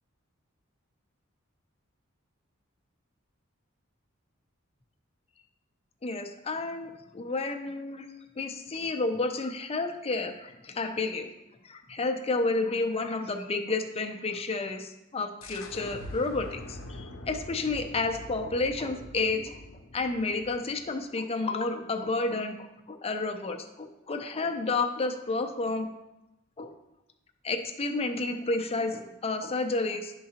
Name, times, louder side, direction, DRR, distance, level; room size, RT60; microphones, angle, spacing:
voice 1, 6.0-8.1 8.4-11.3 11.6-19.6 19.9-22.6 22.9-25.9 26.6-26.7 27.4-30.2, left 3 dB, 30° left, 6 dB, 0.5 m, -31 dB
sound 1, 15.4-20.9, left 1 dB, 70° left, 0.7 m, -44 dB
10.5 x 3.8 x 2.8 m, 0.94 s
head